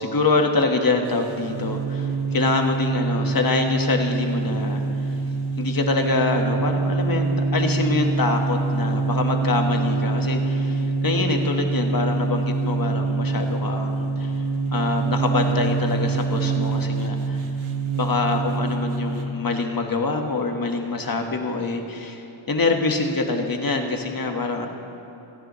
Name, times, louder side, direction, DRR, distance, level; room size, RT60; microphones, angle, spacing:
voice 1, 0.0-5.2 5.6-14.4 14.7-17.4 18.0-24.7, left 3 dB, 45° left, 3 dB, 1.5 m, -25 dB
sound 1, 1.1-19.3, right 4 dB, 85° right, 1.0 m, -25 dB
29.5 x 10.0 x 3.1 m, 2.8 s
cardioid pair, 65°, 48 cm